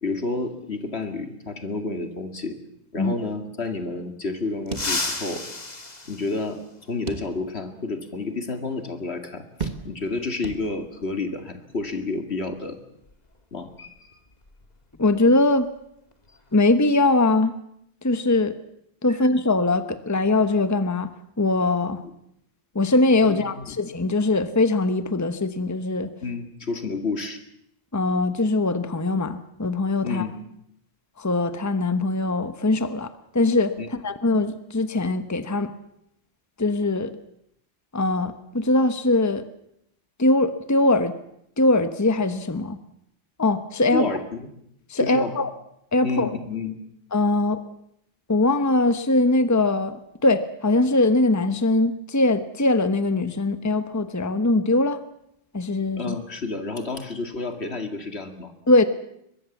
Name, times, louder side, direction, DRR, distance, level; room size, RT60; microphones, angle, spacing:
voice 1, 0.0-2.6 2.9-5.4 6.1-6.6 6.9-12.8 13.5-14.2 19.1-19.3 22.0-22.1 23.2-23.7 26.2-27.4 30.0-30.4 33.8-33.9 43.9-44.4 45.0-45.3 46.0-46.8 56.0-58.5, left 3 dB, 60° left, 6 dB, 2.5 m, -30 dB
sound 1, 4.7-7.1 8.7-8.8 10.0-10.1 11.8-11.9 12.3-12.5 13.0-15.2 15.4-15.7 16.1-16.5, left 2 dB, 35° left, 2.2 m, -34 dB
sound 2, 4.7-5.6 5.9-6.0 7.1-7.7 8.2-8.3 9.6-10.2 10.4-11.1, right 4 dB, 35° right, 1.6 m, -35 dB
voice 2, 15.0-15.7 16.5-17.5 18.0-18.5 19.0-21.1 21.4-22.0 22.7-26.1 27.9-30.2 31.2-33.1 33.3-33.7 34.0-35.7 36.6-37.1 37.9-39.4 40.2-41.1 41.6-42.8 43.4-44.0 44.9-45.5 45.9-46.3 47.1-47.6 48.3-55.0 55.5-56.1 58.7-58.8, left 2 dB, 15° left, 10 dB, 1.1 m, -21 dB
23.0 x 22.0 x 7.3 m, 0.75 s
omnidirectional pair, 1.2 m